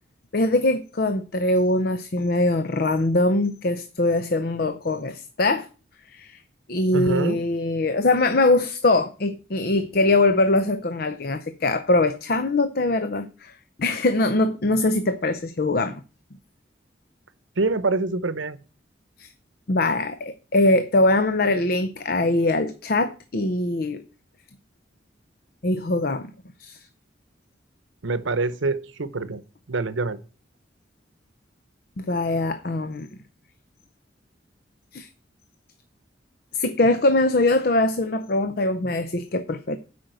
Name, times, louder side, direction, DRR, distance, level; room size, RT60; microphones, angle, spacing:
voice 1, 0.3-5.7 6.1-6.4 6.7-13.5 13.8-16.0 19.2-19.3 19.7-24.0 25.6-26.3 26.6-26.8 32.0-33.1 34.9-35.1 36.5-39.8, left 2 dB, 55° left, 0.6 m, -22 dB
voice 2, 6.9-7.4 17.6-18.6 28.0-29.4 29.7-30.2, right 3 dB, 90° right, 0.9 m, -25 dB
8.8 x 5.3 x 7.8 m
head